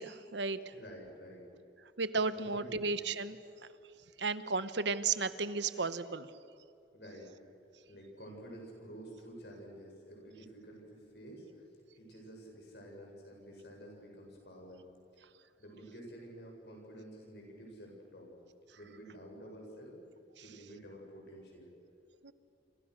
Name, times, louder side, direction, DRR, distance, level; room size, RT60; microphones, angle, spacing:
voice 1, 0.0-0.7 2.0-3.4 4.2-6.3 22.2-22.3, right 4 dB, 85° right, 13 dB, 1.1 m, -34 dB
voice 2, 0.7-1.4 2.3-2.8 6.9-7.3 7.9-11.5 12.0-14.8 15.6-18.3 18.7-20.0 20.4-21.7, right 1 dB, 70° left, 0 dB, 7.4 m, -50 dB
28.5 x 27.0 x 6.6 m, 2.5 s
head